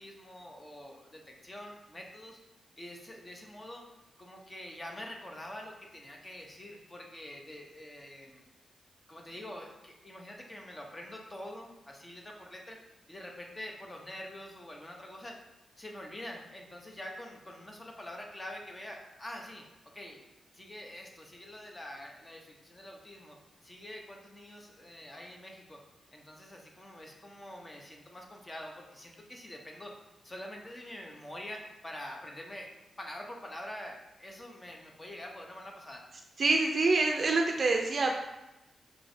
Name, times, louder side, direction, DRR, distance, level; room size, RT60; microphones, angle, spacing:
voice 1, 0.0-2.4 2.8-3.8 4.2-8.4 9.1-12.8 13.1-15.4 15.8-19.6 19.9-20.3 20.5-23.4 23.6-25.8 26.1-29.9 30.2-32.7 33.0-36.0, left 1 dB, 25° left, 1 dB, 0.7 m, -45 dB
voice 2, 36.4-38.1, right 3 dB, 50° right, 2 dB, 0.4 m, -26 dB
4.8 x 3.1 x 2.6 m, 0.95 s
cardioid pair, 90°, 0 cm